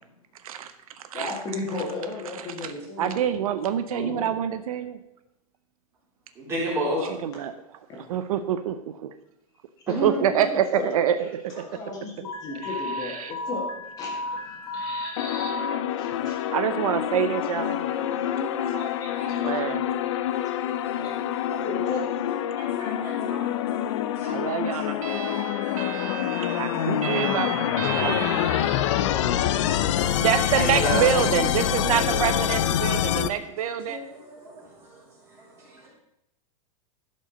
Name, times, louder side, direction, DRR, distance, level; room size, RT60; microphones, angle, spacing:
voice 1, 0.4-1.4 2.4-2.7 3.0-5.0 7.1-7.5 8.0-9.1 9.9-11.7 12.2-12.3 12.6-13.3 16.5-17.9 19.4-19.9 22.5-22.6 24.3-29.1 30.1-34.0, right 9 dB, 70° right, 10 dB, 0.7 m, -27 dB
voice 2, 1.1-3.3 3.9-4.4 6.9-7.1 9.9-10.9 11.6-15.5 15.9-16.5 17.7-19.5 20.0-20.7 20.9-21.1 21.5-22.1, left 3 dB, 20° left, -1 dB, 1.9 m, -36 dB
voice 3, 6.4-7.0 9.9-10.3 18.3-18.7 19.2-19.4 20.9-21.0 22.6-23.4 25.7-26.1 26.3-26.4 26.8-26.9 30.6-31.0 33.9-34.6, right 1 dB, 15° right, -6 dB, 3.4 m, -31 dB
Alarm, 12.2-15.7, left 2 dB, 85° left, 2.9 m, -33 dB
sound 1, 15.2-33.3, left 10 dB, 50° left, 0.6 m, -26 dB
12.0 x 5.3 x 5.1 m, 0.82 s
supercardioid pair, 170°, 19 cm